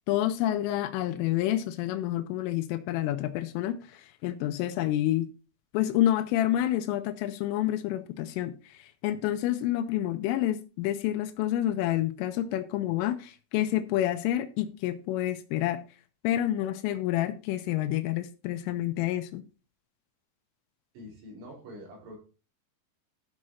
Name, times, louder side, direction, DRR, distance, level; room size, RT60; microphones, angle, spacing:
voice 1, 0.1-5.3 5.7-15.8 16.2-19.4, left 13 dB, 90° left, 3.3 m, -28 dB
voice 2, 20.9-22.2, equal, 70° right, 5.7 m, -45 dB
12.5 x 6.3 x 4.3 m
omnidirectional pair, 5.8 m